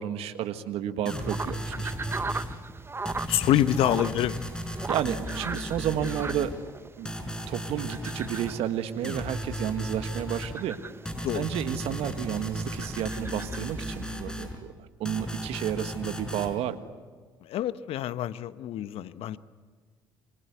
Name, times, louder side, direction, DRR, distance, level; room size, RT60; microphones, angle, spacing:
voice 1, 0.0-2.0 4.9-6.5 7.0-10.8 11.3-16.8, right 10 dB, 65° right, 10 dB, 1.7 m, -31 dB
sound 1, 1.0-2.5 3.0-6.5 7.0-8.5 9.0-10.5 11.0-14.5 15.0-16.5, equal, 5° left, 5.2 m, -35 dB
sound 2, 1.1-14.2, right 3 dB, 20° right, 1.0 m, -40 dB
voice 2, 3.3-4.5 11.2-11.4 17.4-19.4, left 12 dB, 60° left, 14 dB, 1.0 m, -26 dB
26.5 x 25.5 x 8.2 m, 1.5 s
hypercardioid pair, 55°, 11 cm